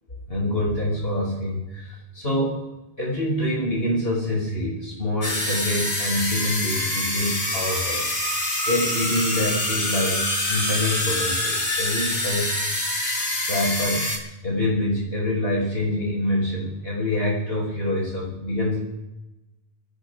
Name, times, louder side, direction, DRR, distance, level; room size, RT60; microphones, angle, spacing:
voice 1, 0.3-2.5 3.0-8.2 8.7-12.6 13.2-18.8, left 1 dB, 75° left, -3 dB, 8.2 m, -26 dB
sound 1, 5.2-14.2, left 1 dB, 55° left, 2.9 m, -26 dB
28.5 x 17.0 x 2.7 m, 1.0 s
omnidirectional pair, 1.1 m